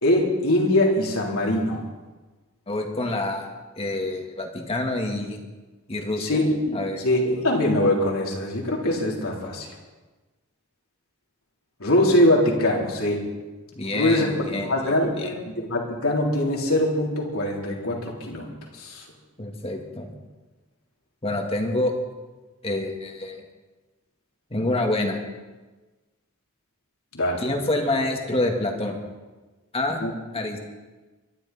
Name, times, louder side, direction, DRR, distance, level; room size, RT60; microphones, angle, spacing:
voice 1, 0.0-1.8 6.2-9.7 11.8-13.2 13.9-14.4 14.7-18.5 18.8-19.0 27.1-27.4 30.0-30.1, left 1 dB, 75° left, -2 dB, 3.6 m, -22 dB
voice 2, 2.7-3.5 3.8-5.4 5.9-6.4 6.7-7.0 13.8-15.4 19.4-20.1 21.2-21.9 22.6-23.4 24.5-25.2 27.4-29.0 29.7-30.0 30.3-30.7, left 2 dB, 30° left, 2 dB, 2.0 m, -27 dB
24.0 x 11.5 x 4.2 m, 1.2 s
head